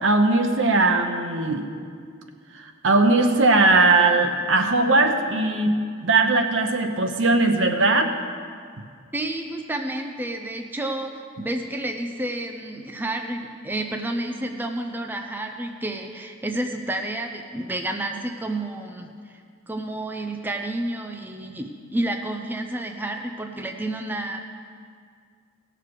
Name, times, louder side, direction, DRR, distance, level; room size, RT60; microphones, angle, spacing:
voice 1, 0.0-1.7 2.8-5.7 6.0-8.1, right 3 dB, 70° right, 5 dB, 1.0 m, -19 dB
voice 2, 9.1-19.4 19.7-24.4, right 1 dB, 10° right, 3 dB, 0.5 m, -30 dB
17.0 x 6.7 x 4.8 m, 2.1 s
head